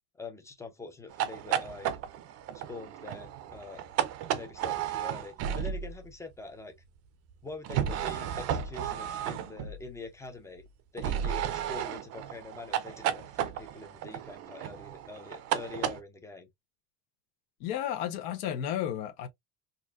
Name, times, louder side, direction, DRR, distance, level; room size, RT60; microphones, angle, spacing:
voice 1, 0.1-1.9 2.5-3.8 4.3-6.8 7.4-10.6 10.9-16.5, left 3 dB, 10° left, 0.5 m, -44 dB
sound 1, 1.1-6.1 7.6-9.9 11.0-16.0, right 10 dB, 40° right, 0.5 m, -33 dB
voice 2, 17.6-19.3, left 10 dB, 70° left, 1.0 m, -32 dB
4.0 x 2.6 x 2.4 m
cardioid pair, 175°, 37 cm